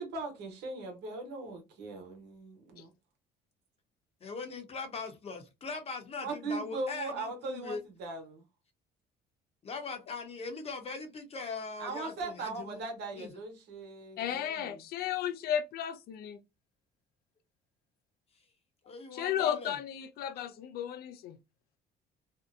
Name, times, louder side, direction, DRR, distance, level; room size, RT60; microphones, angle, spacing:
voice 1, 0.0-2.9 6.2-8.4 11.8-14.8, right 3 dB, 80° right, 1.1 m, -39 dB
voice 2, 4.2-7.8 9.6-12.8 13.1-13.3 18.9-19.7, left 4 dB, 35° left, 0.8 m, -40 dB
voice 3, 14.2-16.4 19.1-21.4, left 9 dB, 65° left, 0.4 m, -34 dB
2.7 x 2.1 x 2.5 m
cardioid pair, 110°, 17 cm